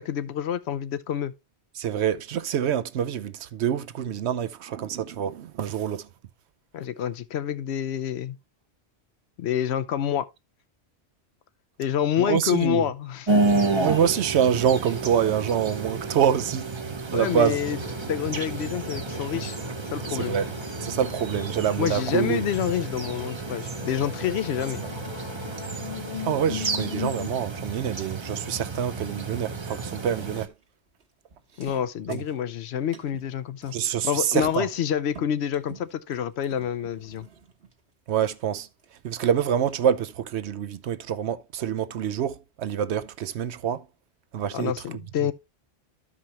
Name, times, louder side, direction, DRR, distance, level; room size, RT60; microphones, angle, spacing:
voice 1, 0.0-1.3 6.7-8.4 9.4-10.3 11.8-13.3 17.1-17.8 18.1-19.6 19.9-20.4 21.8-24.8 31.6-33.7 34.0-37.3 44.5-45.3, left 9 dB, 80° left, 0.9 m, -27 dB
voice 2, 1.8-6.1 12.2-12.9 13.8-16.7 17.1-17.6 20.1-20.5 20.8-22.4 26.2-30.5 32.1-32.2 33.7-34.7 38.1-38.7 39.0-43.8 44.3-44.7, right 9 dB, 85° right, 0.9 m, -26 dB
sound 1, 13.3-30.5, right 3 dB, 30° right, 0.7 m, -31 dB
sound 2, 17.2-27.3, left 7 dB, 50° left, 0.8 m, -39 dB
sound 3, 25.0-30.7 31.0-31.1 31.3-33.4 33.6-38.5 38.8-39.7, right 6 dB, 65° right, 1.5 m, -51 dB
13.0 x 4.9 x 3.0 m
omnidirectional pair, 1.1 m